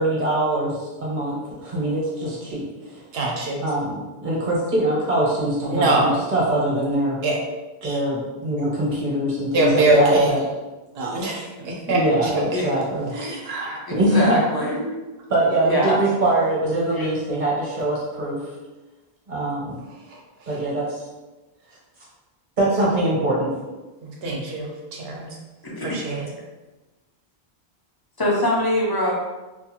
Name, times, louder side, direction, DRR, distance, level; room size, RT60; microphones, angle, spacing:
voice 1, 0.0-2.9 3.6-7.2 7.8-10.4 11.9-13.1 13.9-14.4 15.3-18.5 19.3-19.8 20.5-21.1 22.6-23.5, right 1 dB, 50° right, -5 dB, 1.0 m, -23 dB
voice 2, 3.1-3.7 5.7-6.2 7.2-7.4 7.8-8.0 9.5-10.4 10.9-12.3 13.1-13.8 14.6-15.0 20.1-20.6 24.0-25.4 25.8-26.3, right 2 dB, 75° right, -2 dB, 0.9 m, -23 dB
voice 3, 13.9-14.7 15.6-16.0 17.0-17.1 25.6-26.2 28.2-29.1, left 1 dB, 40° left, -3 dB, 0.3 m, -23 dB
2.5 x 2.3 x 2.8 m, 1.1 s
omnidirectional pair, 1.0 m